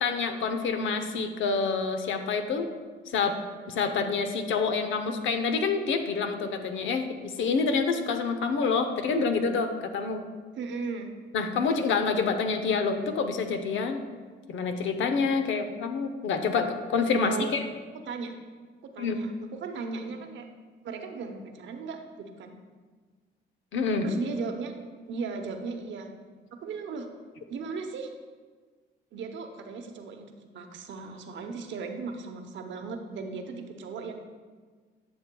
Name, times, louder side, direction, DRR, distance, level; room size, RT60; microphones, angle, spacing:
voice 1, 0.0-2.7 3.1-3.4 3.7-10.2 11.3-14.0 14.5-17.6 19.0-19.2 23.7-24.1, left 5 dB, 75° left, 7 dB, 0.7 m, -27 dB
voice 2, 10.5-11.1 17.2-17.5 18.0-18.3 18.9-20.5 20.8-22.5 24.0-24.7 25.1-26.1 26.6-27.1 27.5-28.1 29.1-30.3 30.5-34.1, right 4 dB, 70° right, 4 dB, 0.9 m, -36 dB
10.5 x 7.1 x 2.3 m, 1.4 s
cardioid pair, 90°, 20 cm